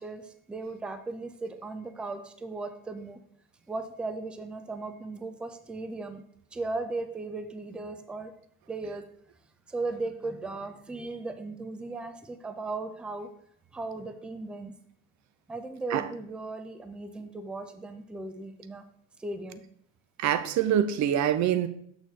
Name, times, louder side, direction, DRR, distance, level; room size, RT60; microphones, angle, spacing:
voice 1, 0.0-3.2 3.7-6.2 6.5-8.3 8.7-9.1 9.7-13.3 13.7-14.7 15.5-18.8 19.2-19.6, right 3 dB, 5° right, 9 dB, 0.3 m, -37 dB
voice 2, 20.2-21.7, right 10 dB, 40° right, 13 dB, 0.6 m, -25 dB
6.5 x 6.3 x 3.2 m, 0.67 s
supercardioid pair, 95°, 46 cm